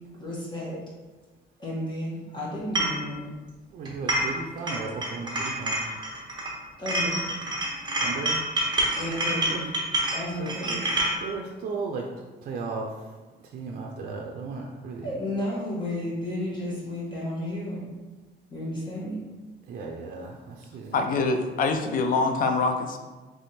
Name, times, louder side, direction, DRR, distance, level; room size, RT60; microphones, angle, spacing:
voice 1, 0.2-0.8 1.6-3.3 6.8-7.2 9.0-9.6 10.1-10.8 11.1-11.2 15.0-17.8 18.5-19.2, left 1 dB, 25° left, -5 dB, 1.3 m, -32 dB
Water Glass Collision, 2.8-3.0 3.9-4.4 4.7-6.5 6.9-11.2, right 1 dB, 25° right, 0.9 m, -27 dB
voice 2, 3.7-5.8 8.0-8.4 9.5-9.6 10.4-10.8 11.1-12.0 12.4-13.1 13.5-15.1 19.7-20.9, right 4 dB, 55° right, 0 dB, 0.5 m, -35 dB
voice 3, 20.9-23.0, left 3 dB, 50° left, 6 dB, 0.5 m, -24 dB
3.5 x 3.3 x 4.1 m, 1.2 s
cardioid pair, 150°, 18 cm